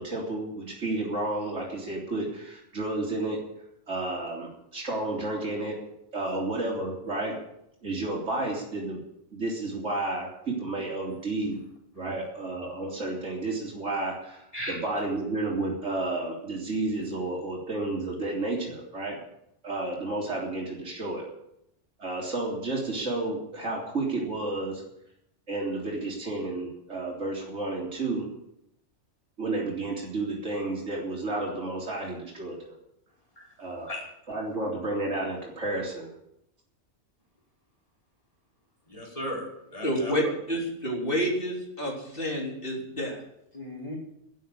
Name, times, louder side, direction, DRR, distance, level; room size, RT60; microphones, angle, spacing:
voice 1, 0.0-3.4 3.9-5.8 6.1-7.4 7.8-9.0 9.3-11.6 11.9-19.2 19.6-21.3 22.0-24.8 25.5-28.3 29.4-32.8 33.6-33.9 34.3-36.1, right 2 dB, 75° right, -3 dB, 3.8 m, -31 dB
voice 2, 38.9-40.3 43.5-44.0, equal, 30° left, -3 dB, 4.9 m, -36 dB
voice 3, 39.8-43.2, equal, 45° left, -1 dB, 3.9 m, -29 dB
12.0 x 10.0 x 9.0 m, 0.79 s
omnidirectional pair, 1.2 m